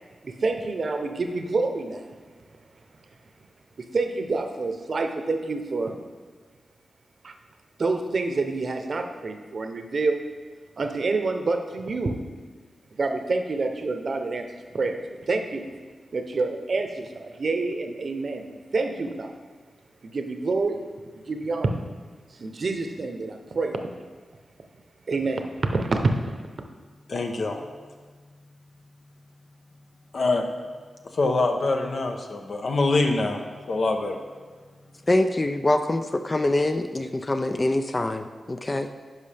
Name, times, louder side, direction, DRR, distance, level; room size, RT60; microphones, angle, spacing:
voice 1, 0.2-2.0 3.9-5.9 7.2-7.3 7.8-10.2 10.8-12.2 13.0-14.5 14.7-15.6 16.1-18.4 18.7-19.3 20.0-20.8 21.3-21.7 22.3-23.8 25.1-26.2, right 3 dB, 55° right, 5 dB, 0.8 m, -27 dB
voice 2, 27.1-27.6 30.1-30.4 31.1-33.4 33.7-34.2, left 2 dB, 60° left, 3 dB, 0.8 m, -24 dB
voice 3, 35.1-38.9, left 2 dB, 25° left, 7 dB, 0.4 m, -24 dB
10.5 x 5.5 x 3.4 m, 1.5 s
cardioid pair, 80°, 0 cm